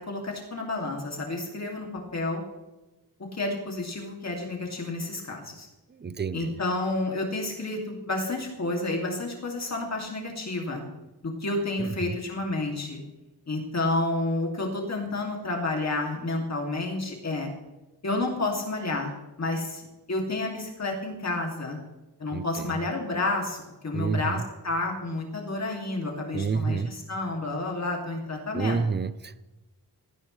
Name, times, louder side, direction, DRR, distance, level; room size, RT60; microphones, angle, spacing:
voice 1, 0.0-1.9 2.1-2.4 3.3-5.7 6.3-10.8 11.2-13.0 13.5-17.5 18.0-21.8 22.2-28.8, left 2 dB, 40° left, 0 dB, 2.7 m, -30 dB
voice 2, 6.0-6.5 11.8-12.2 22.3-22.7 23.9-24.4 26.3-26.9 28.5-29.4, right 5 dB, 25° right, 15 dB, 0.6 m, -29 dB
19.5 x 15.0 x 3.3 m, 1.1 s
wide cardioid pair, 165°, 40 cm